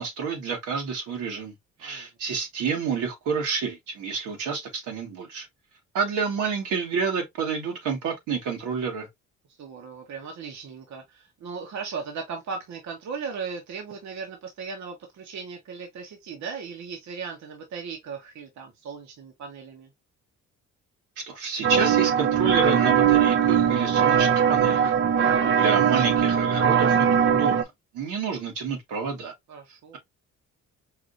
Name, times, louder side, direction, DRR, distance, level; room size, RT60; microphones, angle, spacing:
voice 1, 0.0-1.5 1.8-5.5 5.9-9.1 21.2-24.9 25.5-27.7 27.9-29.3, right 5 dB, 85° right, 1.5 m, -29 dB
voice 2, 9.6-19.9 29.5-30.0, right 5 dB, 65° right, 1.1 m, -37 dB
sound 1, 21.6-27.6, right 8 dB, 40° right, 0.5 m, -20 dB
4.8 x 2.6 x 2.5 m
cardioid pair, 90°, 30 cm